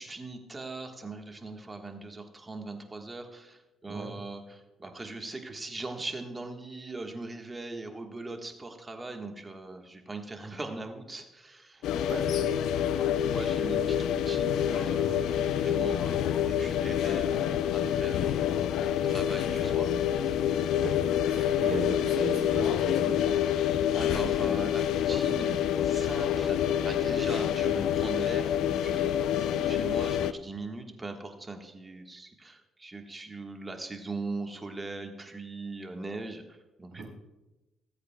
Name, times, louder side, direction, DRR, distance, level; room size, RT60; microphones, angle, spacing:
voice 1, 0.0-11.8 12.9-20.3 23.4-37.1, right 3 dB, 20° right, 4 dB, 1.4 m, -40 dB
sound 1, 11.8-30.3, left 10 dB, 85° left, 0.4 m, -27 dB
voice 2, 11.8-12.6 20.8-23.2 36.9-37.1, right 3 dB, 65° right, -2 dB, 3.6 m, -37 dB
18.5 x 8.2 x 2.2 m, 1.0 s
cardioid pair, 90°, 0 cm